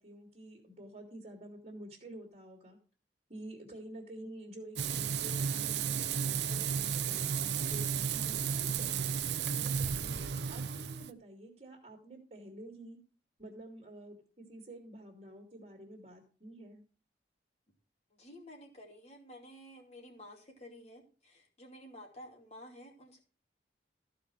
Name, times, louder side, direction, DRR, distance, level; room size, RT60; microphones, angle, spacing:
voice 1, 0.0-2.8 3.3-9.1 9.6-13.0 13.4-16.8, right 1 dB, 40° right, 0 dB, 2.5 m, -49 dB
Frying (food), 4.8-11.1, right 7 dB, 70° right, 0.6 m, -33 dB
voice 2, 18.1-23.2, equal, 35° left, 1 dB, 2.6 m, -52 dB
14.0 x 5.1 x 6.3 m, 0.38 s
head